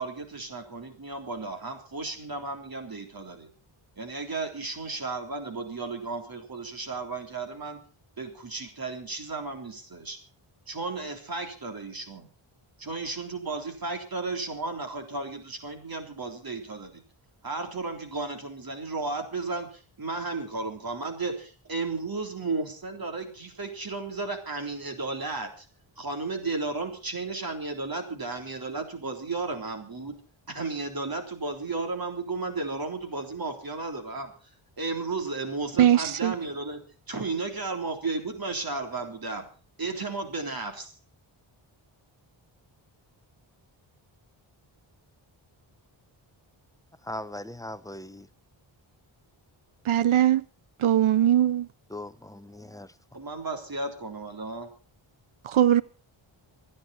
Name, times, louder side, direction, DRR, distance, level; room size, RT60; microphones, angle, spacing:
voice 1, 0.0-3.5 4.0-7.8 8.2-10.2 10.7-12.3 12.8-17.0 17.4-25.7 26.0-30.1 30.5-34.3 34.8-36.8 37.1-39.5 39.8-40.9 53.1-54.7, right 3 dB, 45° right, 3.7 m, -34 dB
voice 2, 35.8-36.3 49.9-50.4 50.8-51.7 55.5-55.8, right 11 dB, 75° right, 0.8 m, -20 dB
voice 3, 47.1-48.3 51.9-52.9, left 1 dB, 5° left, 0.7 m, -39 dB
26.5 x 10.0 x 4.2 m
wide cardioid pair, 120°, 49 cm